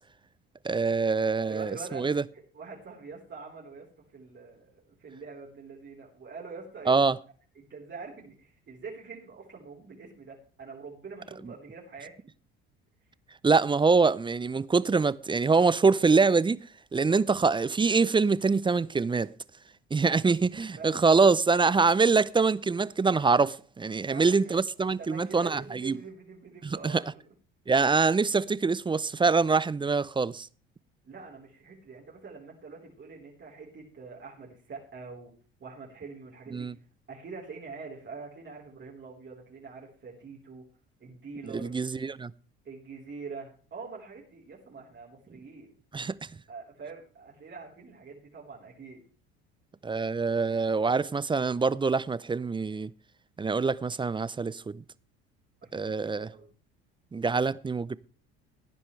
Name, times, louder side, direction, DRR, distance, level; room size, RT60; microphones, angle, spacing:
voice 1, 0.6-2.2 6.9-7.2 13.4-16.6 16.9-19.3 19.9-26.0 26.6-27.0 27.7-30.5 36.5-36.7 41.6-42.3 45.9-46.2 49.8-52.9 53.4-54.8 55.7-56.3 57.1-58.0, right 4 dB, 15° right, 0.5 m, -24 dB
voice 2, 1.4-3.9 4.1-7.0 7.5-12.1 20.7-21.0 24.1-24.6 25.0-27.2 31.0-35.3 35.6-36.7 37.1-40.7 41.0-41.7 42.6-45.7 46.5-49.0 55.6-56.5, right 4 dB, 40° right, 4.1 m, -44 dB
17.5 x 10.0 x 3.3 m
hypercardioid pair, 70°, 30 cm